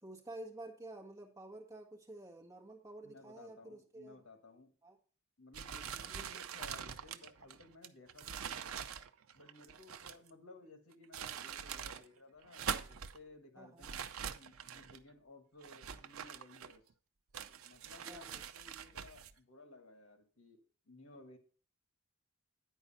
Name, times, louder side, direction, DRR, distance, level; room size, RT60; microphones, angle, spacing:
voice 1, 0.0-4.2 4.8-5.0 6.1-6.3 13.6-13.9 18.1-18.4, right 1 dB, 15° right, 1 dB, 1.5 m, -50 dB
voice 2, 3.0-4.7 5.4-8.8 9.3-14.0 14.4-16.8 17.6-21.4, left 2 dB, 80° left, 7 dB, 1.5 m, -58 dB
sound 1, 5.5-10.3 10.9-12.0 12.4-13.2 13.8-15.0 15.6-16.9 17.3-19.3, right 7 dB, 85° right, 0.6 m, -44 dB
9.7 x 4.7 x 5.5 m, 0.39 s
head